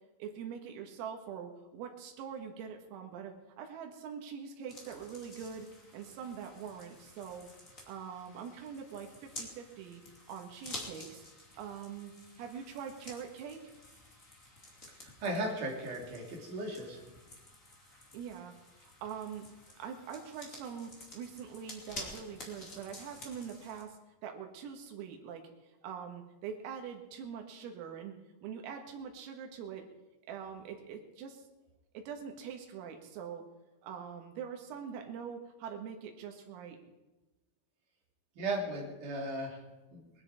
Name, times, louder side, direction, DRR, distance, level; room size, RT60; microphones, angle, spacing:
voice 1, 0.2-7.5 7.9-10.0 10.3-11.3 11.6-12.1 12.4-13.6 18.1-19.5 19.8-25.5 25.8-28.2 28.4-29.9 30.3-31.4 31.9-33.4 33.8-36.8, right 7 dB, 90° right, 4 dB, 4.3 m, -43 dB
sound 1, 4.7-23.8, left 1 dB, 25° left, 1.7 m, -51 dB
voice 2, 15.0-17.0 38.4-39.6 39.9-40.0, right 1 dB, 45° right, -1 dB, 3.8 m, -36 dB
20.5 x 12.5 x 4.9 m, 1.1 s
omnidirectional pair, 5.9 m